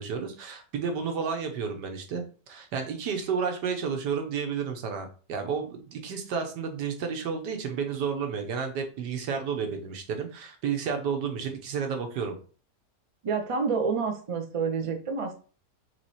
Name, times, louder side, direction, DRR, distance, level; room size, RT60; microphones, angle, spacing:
voice 1, 0.0-2.2 2.5-12.4, right 6 dB, 85° right, 5 dB, 1.5 m, -31 dB
voice 2, 13.2-15.4, right 5 dB, 50° right, 4 dB, 0.3 m, -28 dB
3.9 x 3.2 x 4.1 m, 0.39 s
omnidirectional pair, 1.8 m